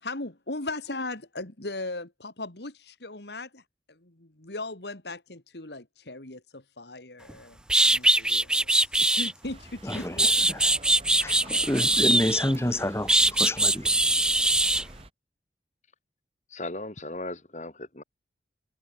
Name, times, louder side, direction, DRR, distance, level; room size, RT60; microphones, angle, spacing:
voice 1, 0.0-10.3 11.2-11.6, left 2 dB, 75° left, 2.6 m, -38 dB
sound 1, 7.3-7.4 7.7-9.3 9.9-12.6 13.1-14.8, right 1 dB, 5° right, 0.3 m, -22 dB
sound 2, 9.4-15.1, right 1 dB, 35° right, 5.0 m, -46 dB
voice 2, 11.7-13.9, left 1 dB, 15° left, 1.6 m, -28 dB
voice 3, 16.5-18.0, left 2 dB, 40° left, 2.1 m, -37 dB
head